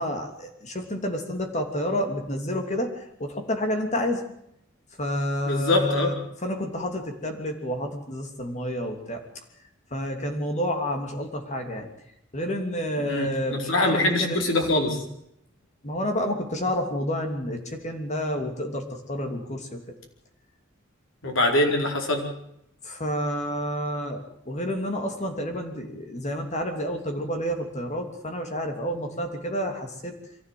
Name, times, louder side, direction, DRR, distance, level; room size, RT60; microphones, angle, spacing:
voice 1, 0.0-4.2 5.0-6.1 6.4-9.2 9.9-11.9 12.3-14.4 14.9-15.0 15.8-19.8 22.8-30.2, equal, 35° left, 4 dB, 3.1 m, -29 dB
voice 2, 5.4-6.1 13.0-15.0 21.2-22.2, left 1 dB, 75° left, 2 dB, 4.7 m, -23 dB
24.0 x 15.0 x 7.8 m, 0.75 s
head